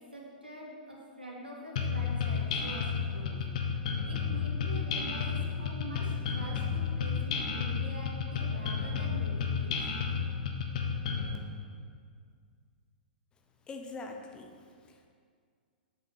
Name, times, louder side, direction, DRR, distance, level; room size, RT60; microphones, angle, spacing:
voice 1, 0.0-3.4 4.1-10.0, right 1 dB, 90° right, -4 dB, 2.0 m, -45 dB
sound 1, 1.8-11.4, left 6 dB, 50° left, 0.9 m, -32 dB
voice 2, 13.7-15.1, left 3 dB, 15° left, 3 dB, 0.7 m, -44 dB
7.7 x 5.8 x 5.8 m, 2.1 s
figure-of-eight pair, 105°, 5 cm